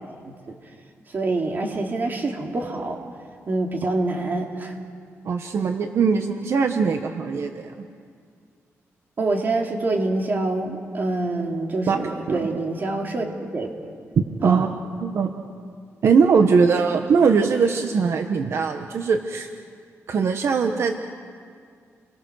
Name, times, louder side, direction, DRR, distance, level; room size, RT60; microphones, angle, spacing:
voice 1, 1.1-3.0 3.5-4.7 9.2-13.7 14.4-14.7, right 2 dB, 40° right, 1 dB, 3.1 m, -26 dB
voice 2, 5.2-7.9 11.9-12.5 14.4-14.7 15.0-15.3 16.0-19.5 20.1-21.0, right 5 dB, 55° right, 6 dB, 1.2 m, -21 dB
30.0 x 22.0 x 6.5 m, 2.2 s
wide cardioid pair, 145°, 5 cm